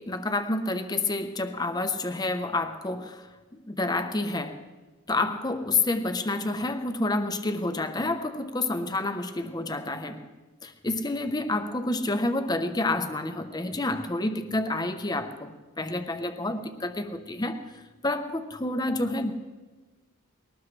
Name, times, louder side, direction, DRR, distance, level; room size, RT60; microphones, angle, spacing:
voice 1, 0.0-3.3 3.7-4.7 5.1-10.3 10.6-19.3, left 2 dB, 20° left, 8 dB, 0.8 m, -29 dB
21.0 x 18.5 x 3.3 m, 1.2 s
head